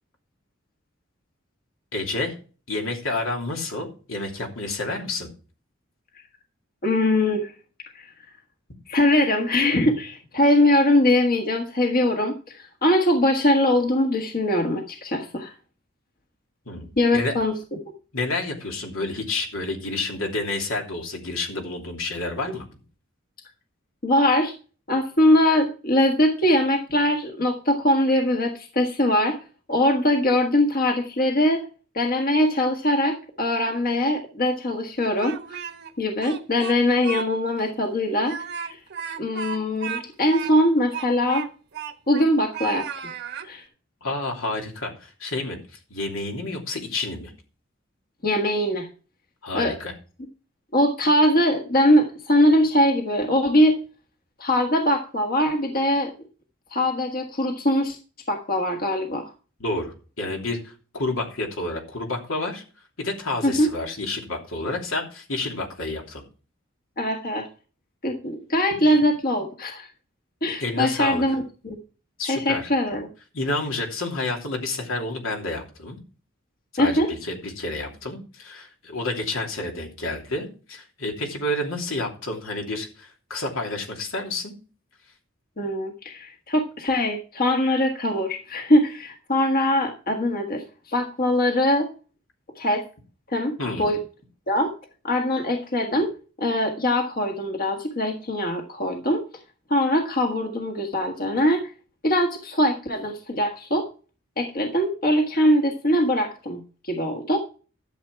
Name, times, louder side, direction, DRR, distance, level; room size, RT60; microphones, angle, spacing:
voice 1, 1.9-2.4 2.7-5.3 16.7-17.3 18.1-22.6 44.0-45.6 45.9-47.3 49.4-49.9 59.6-62.6 63.0-66.2 70.6-71.2 72.2-72.7 73.3-76.0 76.7-84.5 93.6-93.9, left 2 dB, 80° left, 1 dB, 2.9 m, -29 dB
voice 2, 6.8-7.5 7.9-8.1 8.9-15.5 17.0-17.5 24.0-24.5 24.9-29.4 29.7-31.7 31.9-35.6 36.0-38.4 38.6-38.8 39.2-41.5 42.1-42.9 43.4-43.6 48.2-48.9 49.5-49.8 50.7-53.8 54.4-56.1 56.7-58.0 58.3-59.3 63.4-63.7 67.0-67.5 68.0-69.9 70.4-71.8 72.3-73.1 76.8-77.1 85.6-91.9 92.6-92.8 93.3-94.0 94.5-94.7 95.0-96.1 96.4-99.2 99.7-101.7 102.0-103.9 104.4-107.4, left 1 dB, 45° left, 3 dB, 1.5 m, -22 dB
Speech, 35.0-35.9 36.2-37.3 37.6-37.7 38.2-42.3 42.5-43.5, right 7 dB, 55° right, 1.2 m, -34 dB
12.5 x 7.4 x 4.6 m, 0.36 s
head